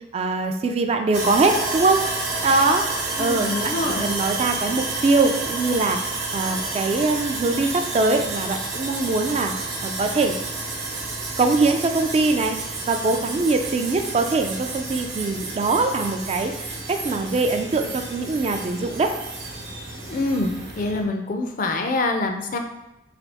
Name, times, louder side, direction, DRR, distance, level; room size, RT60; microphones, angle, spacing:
voice 1, 0.1-2.0 2.4-2.8 3.2-6.0 6.3-9.5 9.8-10.4 11.4-12.6 12.9-16.5 16.9-19.1, right 3 dB, 35° right, 6 dB, 0.3 m, -22 dB
Sawing, 1.1-21.0, right 3 dB, 65° right, 0.8 m, -30 dB
voice 2, 3.2-4.1 20.1-20.5 20.8-22.6, left 2 dB, 50° left, 4 dB, 0.4 m, -25 dB
3.4 x 2.7 x 4.0 m, 0.94 s
head